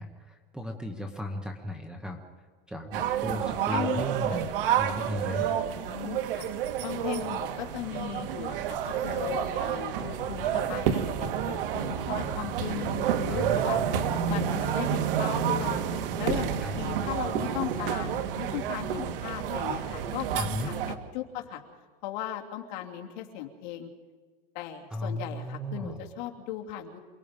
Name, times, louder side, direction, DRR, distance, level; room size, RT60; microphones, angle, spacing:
voice 1, 0.0-2.2 2.7-5.5 13.3-13.9 16.6-16.8 20.4-20.7 24.9-26.0, equal, 5° right, 4 dB, 1.0 m, -35 dB
sound 1, 2.9-21.0, right 9 dB, 65° right, 1.8 m, -29 dB
voice 2, 3.7-4.0 4.3-4.4 5.6-6.5 6.8-13.8 14.3-15.8 16.2-21.6 22.0-23.9 24.5-27.0, left 12 dB, 50° left, 1 dB, 2.9 m, -37 dB
sound 2, 8.4-20.8, right 6 dB, 40° right, 7.2 m, -47 dB
28.0 x 19.5 x 5.2 m, 1.4 s
supercardioid pair, 175°, 29 cm